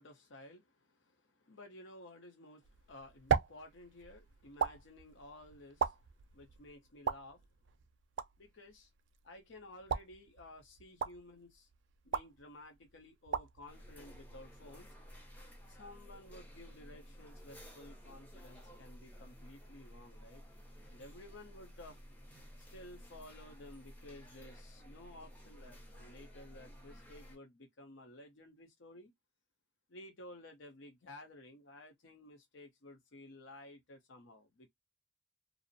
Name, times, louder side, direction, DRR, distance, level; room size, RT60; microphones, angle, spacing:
voice 1, 0.0-7.5 8.4-8.9 9.2-11.7 12.0-14.9 15.7-20.4 20.9-22.0 22.7-29.1 29.9-34.7, left 1 dB, 70° left, 0.7 m, -54 dB
sound 1, 2.6-14.8, right 6 dB, 65° right, 0.3 m, -40 dB
sound 2, 13.7-27.4, equal, 10° left, 0.6 m, -54 dB
2.5 x 2.0 x 2.5 m
head